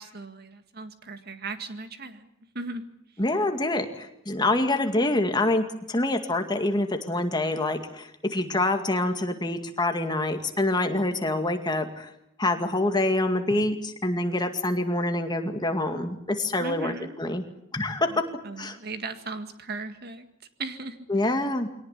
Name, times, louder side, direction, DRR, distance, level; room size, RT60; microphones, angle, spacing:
voice 1, 0.0-2.3 2.5-2.9 16.6-17.2 18.1-20.3 20.6-21.1, right 3 dB, 50° right, 8 dB, 2.0 m, -37 dB
voice 2, 3.2-12.1 12.4-17.4 17.7-18.3 18.6-18.8 21.1-21.7, left 2 dB, 20° left, 6 dB, 2.1 m, -26 dB
23.0 x 18.5 x 9.7 m, 0.80 s
head